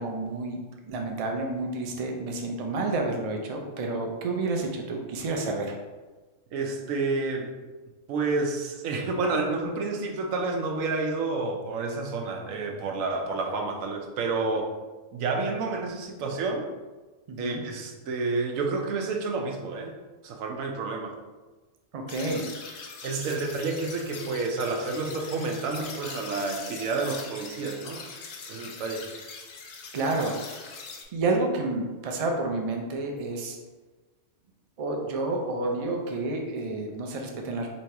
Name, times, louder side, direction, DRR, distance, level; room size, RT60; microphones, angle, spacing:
voice 1, 0.0-5.8 17.3-17.6 21.9-22.4 23.1-23.2 29.9-30.4 31.1-33.6 34.8-37.7, right 2 dB, 55° right, 2 dB, 0.4 m, -30 dB
voice 2, 6.5-7.5 8.1-14.7 15.1-16.7 17.4-20.0 20.2-21.2 23.0-28.0 28.5-29.1, right 3 dB, 90° right, 3 dB, 1.0 m, -29 dB
sound 1, 22.1-31.0, left 4 dB, 65° left, 0.9 m, -42 dB
3.0 x 2.8 x 4.5 m, 1.3 s
omnidirectional pair, 1.3 m